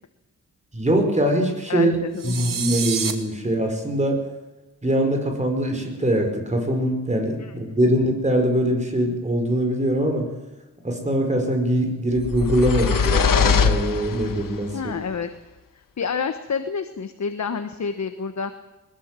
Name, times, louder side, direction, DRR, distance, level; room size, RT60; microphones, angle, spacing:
voice 1, 0.7-4.2 4.8-10.3 10.8-14.9, right 1 dB, 20° right, 3 dB, 5.1 m, -22 dB
voice 2, 1.7-2.4 7.4-7.5 14.7-15.3 16.0-18.5, left 6 dB, 55° left, 8 dB, 1.3 m, -28 dB
sound 1, 2.2-3.1, right 6 dB, 80° right, 2.4 m, -27 dB
sound 2, 12.2-14.6, left 6 dB, 80° left, 1.5 m, -21 dB
21.5 x 21.0 x 7.7 m, 1.1 s
wide cardioid pair, 145°, 33 cm